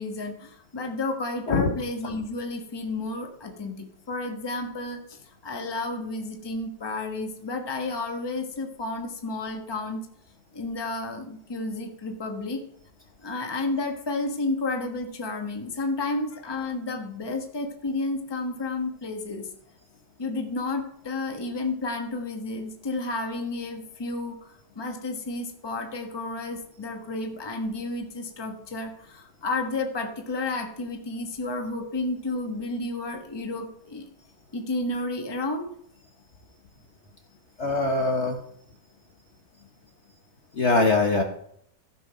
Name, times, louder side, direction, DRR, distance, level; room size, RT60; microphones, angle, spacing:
voice 1, 0.0-10.1 10.5-12.6 13.2-19.5 20.2-34.0 34.5-35.7, left 2 dB, 15° left, 3 dB, 1.1 m, -31 dB
voice 2, 37.6-38.4 40.5-41.2, left 3 dB, 45° left, 3 dB, 1.1 m, -22 dB
15.0 x 5.7 x 5.0 m, 0.69 s
omnidirectional pair, 1.8 m